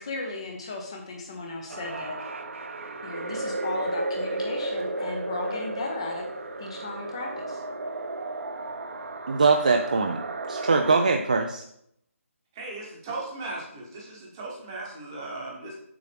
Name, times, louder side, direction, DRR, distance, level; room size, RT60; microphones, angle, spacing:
voice 1, 0.0-2.3 3.0-6.3 6.6-7.6, left 2 dB, 20° left, 2 dB, 0.7 m, -35 dB
sound 1, 1.7-11.0, right 2 dB, 60° right, 0.9 m, -33 dB
voice 2, 9.3-10.2 10.5-11.6, right 4 dB, 35° right, 4 dB, 0.4 m, -22 dB
voice 3, 12.5-15.8, right 2 dB, 15° right, -2 dB, 1.0 m, -37 dB
6.8 x 6.3 x 3.4 m, 0.73 s
figure-of-eight pair, 175°, 8 cm